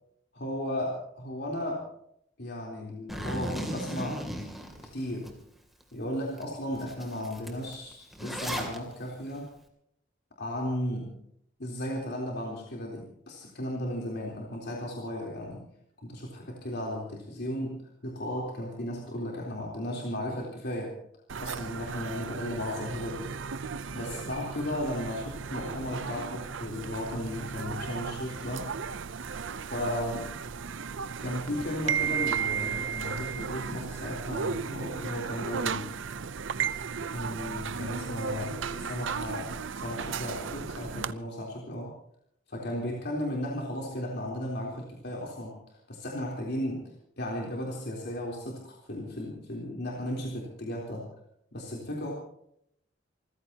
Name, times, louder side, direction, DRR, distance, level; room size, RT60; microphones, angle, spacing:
voice 1, 0.4-1.9 2.4-4.2 4.9-5.3 5.9-9.5 10.4-11.2 11.6-15.6 16.0-21.0 21.4-23.3 23.9-28.7 29.7-30.3 31.2-35.9 37.1-41.9 42.5-46.8 47.2-51.1 51.5-52.1, left 1 dB, 60° left, -2 dB, 3.7 m, -35 dB
Zipper (clothing), 3.1-5.3 5.8-5.9 6.4-6.5 6.7-8.8, equal, ahead, 2.8 m, -36 dB
sound 1, 21.3-41.1, right 6 dB, 75° right, 0.7 m, -35 dB
28.0 x 16.0 x 2.9 m, 0.71 s
head